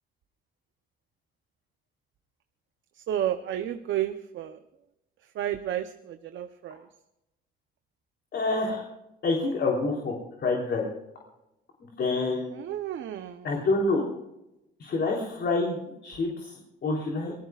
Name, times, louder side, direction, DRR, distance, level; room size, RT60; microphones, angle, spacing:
voice 1, 3.1-4.6 5.4-6.8 12.6-13.4, right 11 dB, 75° right, 8 dB, 0.8 m, -31 dB
voice 2, 8.3-8.8 9.2-10.1 10.4-10.9 11.8-12.5 13.4-14.0 14.8-15.8 16.0-16.5 16.8-17.3, left 3 dB, 60° left, -1 dB, 3.5 m, -27 dB
25.0 x 19.0 x 2.4 m, 0.89 s
cardioid pair, 90°, 20 cm